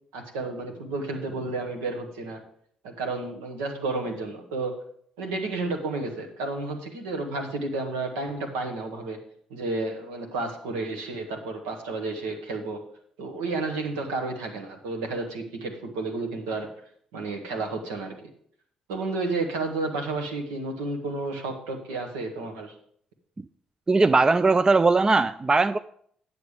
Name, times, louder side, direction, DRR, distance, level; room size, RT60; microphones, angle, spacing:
voice 1, 0.1-2.4 2.8-4.7 5.2-9.2 9.5-12.8 13.2-16.7 17.1-18.3 18.9-22.7, right 3 dB, 75° right, 3 dB, 1.3 m, -31 dB
voice 2, 23.9-25.8, right 3 dB, 25° right, 12 dB, 0.4 m, -19 dB
9.5 x 7.1 x 4.9 m, 0.62 s
figure-of-eight pair, 45°, 3 cm